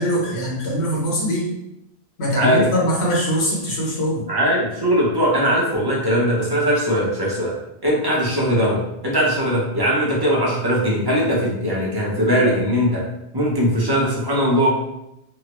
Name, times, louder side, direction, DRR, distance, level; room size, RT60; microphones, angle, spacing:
voice 1, 0.0-1.5 2.2-4.3, equal, 80° left, -4 dB, 1.3 m, -22 dB
voice 2, 2.4-2.7 4.3-7.5 7.8-8.8 9.0-13.0 13.3-14.7, equal, 25° right, -4 dB, 0.8 m, -20 dB
3.6 x 2.1 x 3.0 m, 0.86 s
omnidirectional pair, 1.1 m